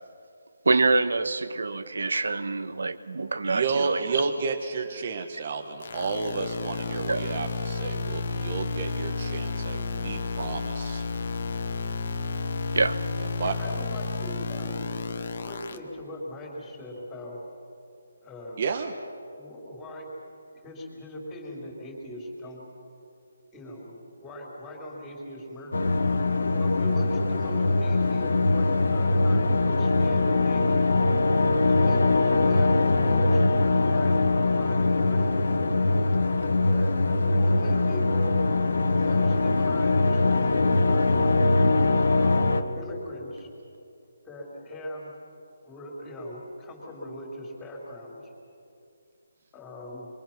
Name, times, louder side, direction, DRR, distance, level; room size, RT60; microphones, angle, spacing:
voice 1, 0.6-4.0 7.1-7.3 12.7-13.0, right 3 dB, 85° right, 12 dB, 1.3 m, -25 dB
voice 2, 3.4-11.0 13.2-13.6 18.6-18.9, right 4 dB, 35° right, 4 dB, 1.1 m, -31 dB
sound 1, 5.8-15.8, left 4 dB, 45° left, 1.4 m, -31 dB
voice 3, 13.6-14.8 15.4-17.4 18.2-18.6 19.3-20.1 20.5-22.6 23.5-25.8 26.5-30.9 31.6-33.4 33.8-35.3 36.6-38.4 38.9-41.2 42.1-43.5 44.2-45.1 45.6-48.3 49.5-50.1, left 1 dB, 10° left, -2 dB, 3.3 m, -40 dB
sound 2, 25.7-42.6, left 2 dB, 75° left, 1.8 m, -22 dB
25.5 x 23.5 x 5.9 m, 2.6 s
hypercardioid pair, 175°, 0 cm